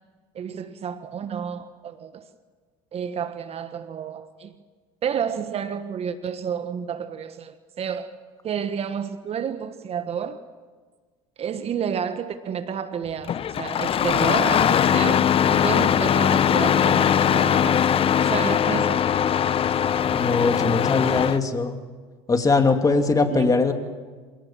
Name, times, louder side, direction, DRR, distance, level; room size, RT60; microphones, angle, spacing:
voice 1, 0.3-2.3 2.9-4.5 5.0-8.1 8.4-10.4 11.4-17.8 18.2-19.0 23.3-23.5, right 7 dB, 45° right, 1.4 m, -30 dB
Engine starting, 13.3-21.4, left 8 dB, 40° left, 0.8 m, -20 dB
voice 2, 20.1-21.8 22.3-23.7, left 4 dB, 25° left, 2.6 m, -21 dB
26.5 x 17.5 x 7.4 m
supercardioid pair, 85°, 15 cm